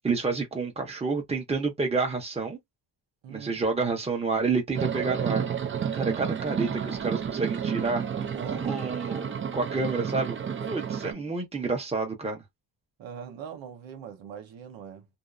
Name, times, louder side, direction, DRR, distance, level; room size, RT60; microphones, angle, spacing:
voice 1, 0.0-2.6 3.3-5.4 5.9-8.0 8.5-12.4, right 4 dB, 15° right, 0.9 m, -29 dB
voice 2, 3.2-3.5 8.3-8.6 10.7-10.8 13.0-15.1, right 7 dB, 85° right, 1.0 m, -41 dB
sound 1, 4.7-11.1, right 7 dB, 30° right, 0.4 m, -31 dB
2.6 x 2.0 x 2.4 m
cardioid pair, 110°, 45 cm